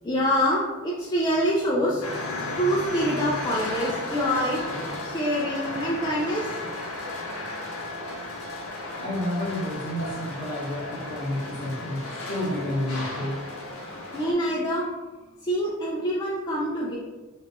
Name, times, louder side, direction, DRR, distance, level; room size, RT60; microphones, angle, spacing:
voice 1, 0.0-6.7 13.8-14.9 15.4-17.0, equal, 20° left, -6 dB, 0.4 m, -26 dB
sound 1, 2.0-14.3, left 2 dB, 70° left, 0.7 m, -34 dB
voice 2, 8.9-13.4, left 1 dB, 45° left, -5 dB, 1.2 m, -30 dB
3.1 x 2.4 x 3.4 m, 1.3 s
head